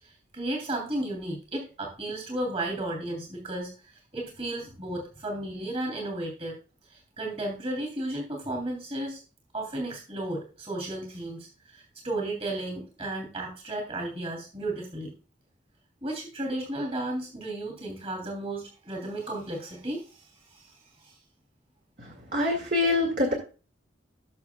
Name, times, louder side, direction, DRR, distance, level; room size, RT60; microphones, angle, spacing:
voice 1, 0.0-6.5 6.9-9.2 9.5-15.1 16.0-21.2, right 1 dB, 30° right, 1 dB, 3.0 m, -34 dB
voice 2, 22.0-23.3, left 2 dB, 50° right, 2 dB, 2.1 m, -25 dB
18.5 x 6.6 x 2.3 m, 0.34 s
head